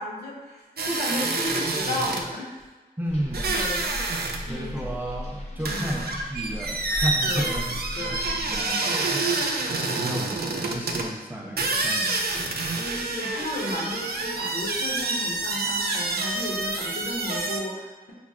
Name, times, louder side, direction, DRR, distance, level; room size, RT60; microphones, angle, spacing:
voice 1, 0.0-2.5 3.5-4.0 4.5-4.9 5.5-5.9 7.2-7.7 7.9-8.4 9.2-9.7 11.7-12.2 12.8-18.1, left 1 dB, 85° left, -4 dB, 0.9 m, -34 dB
sound 1, 0.8-2.3 3.3-4.4 4.7-4.8 5.7-11.1 11.6-17.6, right 3 dB, 75° right, 0.4 m, -28 dB
voice 2, 3.0-3.6 4.5-12.6, right 1 dB, 10° right, -1 dB, 0.5 m, -33 dB
sound 2, 3.1-8.7, left 1 dB, 40° left, 0.5 m, -37 dB
5.7 x 2.0 x 2.4 m, 1.3 s
wide cardioid pair, 85°, 16 cm